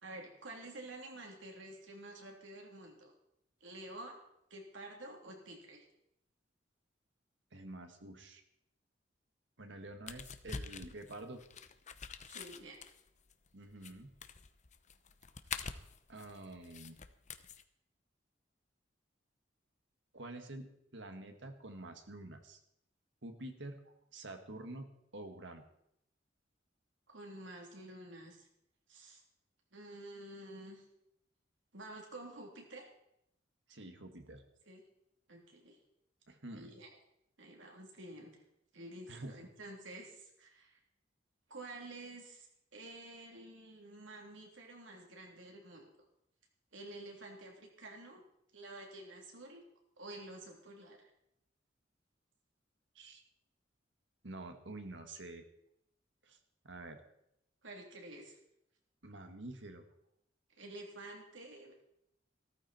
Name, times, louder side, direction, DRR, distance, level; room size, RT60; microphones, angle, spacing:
voice 1, 0.0-3.1 3.6-4.2 4.5-5.9 12.3-12.8 27.1-28.5 28.9-29.2 29.7-30.9 31.7-32.9 34.7-34.8 35.3-35.8 36.5-36.9 37.4-38.4 38.7-40.8 41.5-45.9 46.7-48.2 48.5-49.6 50.0-51.1 57.6-58.4 60.6-61.8, right 2 dB, 90° right, 1 dB, 3.2 m, -50 dB
voice 2, 7.5-8.4 9.6-11.4 13.5-14.1 16.1-17.0 20.1-22.6 23.2-23.8 24.1-24.9 25.1-25.6 33.7-34.4 36.3-36.7 39.1-39.3 52.9-53.2 54.2-55.4 56.2-56.4 56.6-57.0 59.0-59.8, right 2 dB, 75° right, 6 dB, 1.9 m, -48 dB
sound 1, 10.1-17.6, left 5 dB, 40° left, 0.8 m, -46 dB
15.0 x 13.5 x 4.4 m, 0.79 s
head